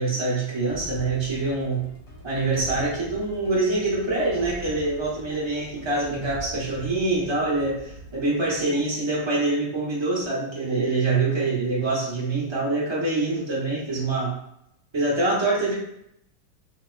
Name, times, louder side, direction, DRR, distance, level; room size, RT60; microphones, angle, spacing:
voice 1, 0.0-1.9 2.2-14.4 14.9-15.7, right 2 dB, 30° right, -6 dB, 0.4 m, -25 dB
sound 1, 0.7-9.5, equal, 55° left, 1.0 m, -43 dB
4.1 x 2.8 x 2.2 m, 0.76 s
omnidirectional pair, 2.1 m